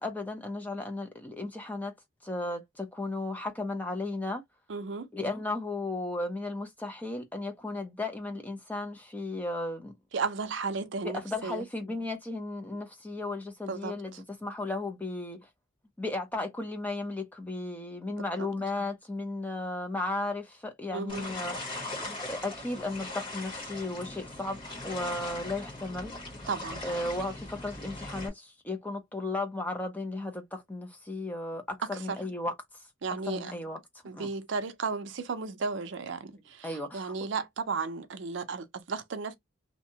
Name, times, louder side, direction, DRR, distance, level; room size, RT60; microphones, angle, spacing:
voice 1, 0.0-1.9 2.2-4.4 5.1-9.9 11.0-15.4 16.0-26.1 26.8-32.5 33.3-33.8 34.1-34.3 36.6-37.1, left 2 dB, 10° left, 0.6 m, -35 dB
voice 2, 4.7-5.1 10.1-11.6 13.7-14.2 18.1-18.5 20.9-21.3 26.5-26.8 31.9-32.2 33.0-33.5 34.0-39.3, right 4 dB, 65° right, 0.5 m, -34 dB
sound 1, 21.1-28.3, left 2 dB, 25° left, 1.2 m, -40 dB
2.7 x 2.2 x 2.6 m
head